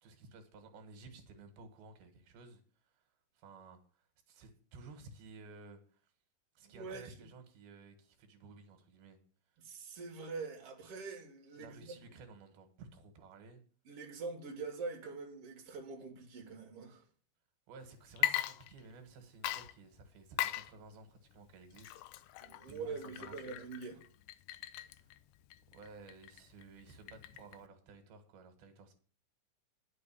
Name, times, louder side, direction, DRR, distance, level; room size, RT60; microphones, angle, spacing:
voice 1, 0.0-3.1 3.4-6.1 6.6-9.2 9.5-9.7 11.6-13.6 17.7-21.9 22.2-23.5 24.8-25.1 25.7-28.9, right 3 dB, 80° right, 3.5 m, -55 dB
voice 2, 6.6-7.1 9.6-12.2 13.8-17.0 22.4-24.0, right 4 dB, 45° right, 3.0 m, -44 dB
Water / Liquid, 18.1-19.1 19.4-27.7, left 13 dB, 80° left, 2.3 m, -40 dB
10.0 x 6.7 x 8.4 m
omnidirectional pair, 4.3 m